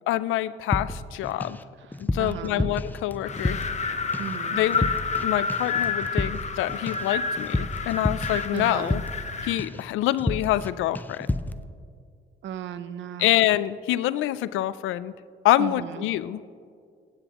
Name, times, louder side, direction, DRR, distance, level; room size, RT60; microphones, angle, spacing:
voice 1, 0.1-1.6 2.0-3.6 4.5-4.9 5.2-9.0 9.4-11.3 13.2-15.1 15.4-16.4, left 14 dB, 85° left, 17 dB, 0.4 m, -26 dB
sound 1, 0.7-1.6 1.9-3.9 4.1-4.4 4.7-5.2 5.5-9.3 9.6-9.9 10.2-10.7 11.0-11.6, left 2 dB, 10° left, 0.4 m, -30 dB
voice 2, 2.2-2.7 4.2-4.6 8.5-9.0 12.4-13.3 15.6-15.7, right 10 dB, 70° right, 13 dB, 0.6 m, -35 dB
Wind, 3.2-9.7, left 5 dB, 35° left, 0.9 m, -30 dB
21.0 x 8.9 x 3.0 m, 2.2 s
cardioid pair, 90°, 20 cm